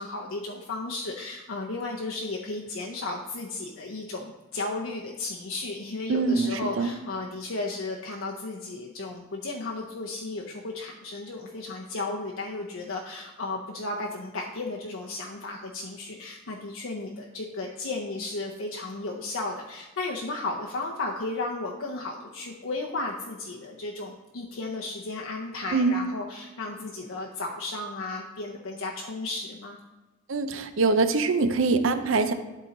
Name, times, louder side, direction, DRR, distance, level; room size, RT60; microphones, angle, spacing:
voice 1, 0.0-29.8, left 2 dB, 75° left, -1 dB, 0.7 m, -34 dB
voice 2, 6.1-6.5 6.8-6.9 25.7-26.0 30.3-32.3, right 4 dB, 75° right, 9 dB, 0.6 m, -23 dB
11.5 x 3.8 x 4.0 m, 1.2 s
head